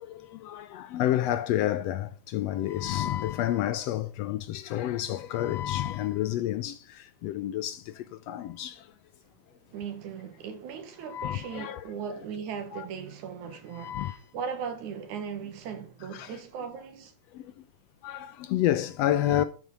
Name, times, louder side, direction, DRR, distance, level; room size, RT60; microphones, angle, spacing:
voice 1, 0.0-8.9 11.1-11.8 12.7-12.9 13.7-14.2 16.1-16.4 17.3-17.7 18.0-19.4, left 12 dB, 80° left, 1.6 m, -30 dB
voice 2, 9.7-17.1, right 7 dB, 85° right, 2.8 m, -38 dB
12.0 x 4.9 x 5.3 m
omnidirectional pair, 3.3 m